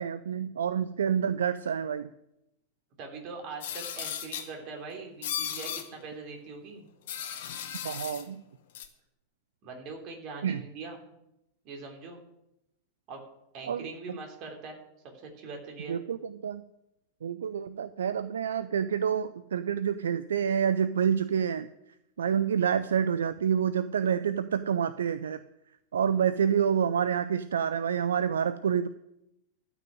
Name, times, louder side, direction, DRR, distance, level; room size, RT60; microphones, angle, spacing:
voice 1, 0.0-2.1 7.8-8.4 10.4-10.6 13.6-14.2 15.9-16.6 17.2-21.7 22.2-25.4 25.9-28.9, right 8 dB, 65° right, 14 dB, 0.5 m, -28 dB
voice 2, 3.0-6.9 9.6-11.0 11.6-12.2 13.1-13.2 13.5-14.8 15.0-16.0, right 4 dB, 40° right, 2 dB, 3.4 m, -42 dB
sound 1, 3.6-4.5 5.2-5.9 7.1-8.2 8.7-8.9, left 9 dB, 55° left, 1.6 m, -36 dB
13.0 x 6.2 x 9.0 m, 0.85 s
figure-of-eight pair, 90°, 0 cm